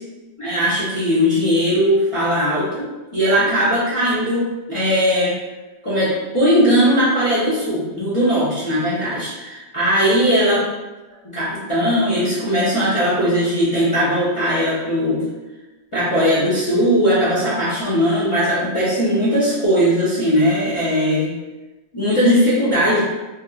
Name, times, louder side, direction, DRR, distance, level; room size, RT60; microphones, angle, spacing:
voice 1, 0.4-5.4 5.8-10.6 11.3-15.3 15.9-21.3 21.9-23.0, equal, 50° left, -10 dB, 0.3 m, -19 dB
2.9 x 2.4 x 2.3 m, 1.1 s
omnidirectional pair, 1.4 m